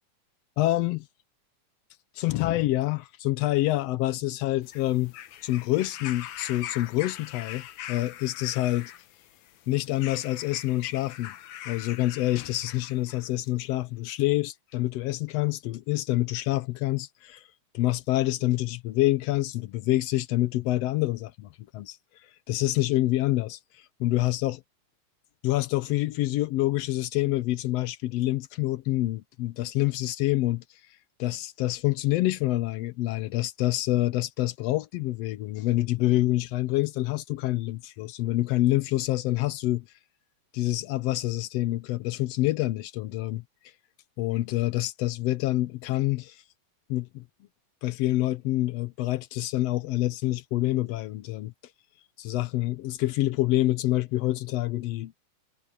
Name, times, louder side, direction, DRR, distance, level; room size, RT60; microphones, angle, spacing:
voice 1, 0.6-1.0 2.1-5.1 5.4-8.9 9.7-11.3 11.7-17.5 17.7-22.0 22.5-23.6 24.0-24.6 25.4-30.6 31.2-39.8 40.5-43.4 44.2-46.4 46.9-47.2 47.8-51.5 52.2-55.1, left 16 dB, 90° left, 1.4 m, -27 dB
sound 1, 4.6-13.3 14.2-14.3, left 11 dB, 70° left, 2.2 m, -42 dB
omnidirectional pair, 3.8 m